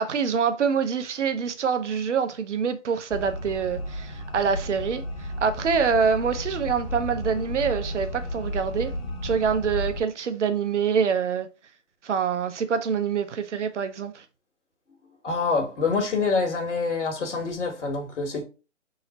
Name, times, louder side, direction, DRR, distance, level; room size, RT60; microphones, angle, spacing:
voice 1, 0.0-5.0 5.4-9.0 9.2-11.5 12.0-14.2, right 6 dB, 75° right, 0.7 m, -25 dB
sound 1, 3.1-10.0, equal, 55° left, 1.1 m, -33 dB
voice 2, 15.2-18.4, left 4 dB, 70° left, 1.5 m, -26 dB
3.7 x 2.0 x 4.0 m
hypercardioid pair, 145°, 37 cm